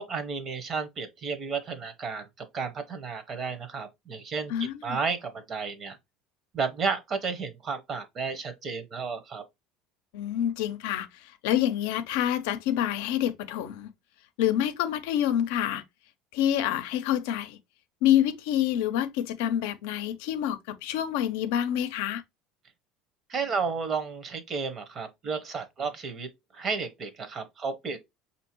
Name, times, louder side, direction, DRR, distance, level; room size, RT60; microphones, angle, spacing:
voice 1, 0.0-6.0 6.5-9.4 23.3-26.3 26.5-28.0, right 5 dB, 35° right, 0.9 m, -32 dB
voice 2, 4.5-5.0 10.1-13.9 14.4-15.8 16.3-17.6 18.0-22.2, left 11 dB, 80° left, 0.5 m, -27 dB
5.2 x 2.8 x 2.9 m
supercardioid pair, 115°, 0 cm